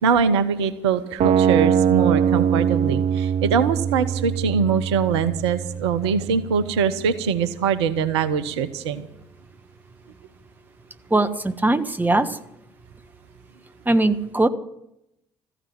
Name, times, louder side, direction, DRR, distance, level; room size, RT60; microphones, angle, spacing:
voice 1, 0.0-9.1, right 6 dB, 75° right, 13 dB, 0.9 m, -23 dB
sound 1, 1.2-7.2, right 8 dB, 50° right, 0.5 m, -23 dB
voice 2, 11.1-12.4 13.8-14.5, right 2 dB, 10° right, 10 dB, 1.4 m, -20 dB
14.5 x 10.0 x 8.8 m, 0.80 s
figure-of-eight pair, 50°, 14 cm